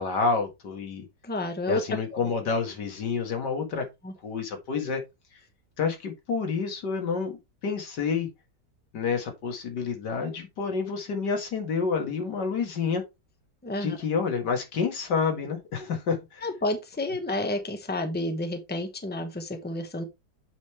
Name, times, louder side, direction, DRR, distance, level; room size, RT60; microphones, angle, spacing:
voice 1, 0.0-1.1 1.7-3.8 4.2-5.0 5.8-7.4 7.6-8.3 8.9-13.0 13.8-16.4, left 5 dB, 70° left, 2.3 m, -28 dB
voice 2, 1.2-1.8 2.1-2.3 4.0-4.1 13.6-14.0 16.4-20.0, left 1 dB, 5° left, 0.9 m, -30 dB
8.3 x 5.2 x 3.2 m
omnidirectional pair, 1.9 m